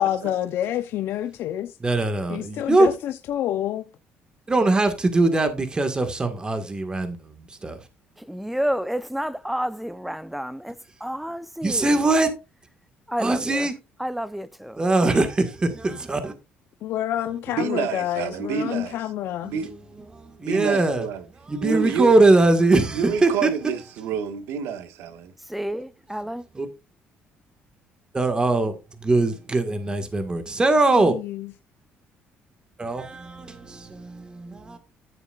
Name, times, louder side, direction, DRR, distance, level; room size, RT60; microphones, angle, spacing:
voice 1, 0.0-1.8 2.3-3.9 16.8-19.5 30.9-31.5, left 11 dB, 75° left, 0.8 m, -28 dB
voice 2, 1.8-2.9 4.5-7.8 11.6-12.3 13.2-13.7 14.8-16.3 19.4-19.8 20.1-21.1 21.5-23.5 26.5-26.7 28.1-31.1 32.8-34.8, right 2 dB, 20° right, 1.8 m, -21 dB
voice 3, 8.2-12.0 13.1-13.7 14.0-14.8 25.5-26.4, equal, 5° right, 0.7 m, -30 dB
voice 4, 17.5-19.0 19.5-19.7 20.4-21.2 21.6-22.1 22.9-25.3, right 7 dB, 85° right, 1.6 m, -28 dB
14.0 x 7.1 x 2.5 m
cardioid pair, 100°, 4 cm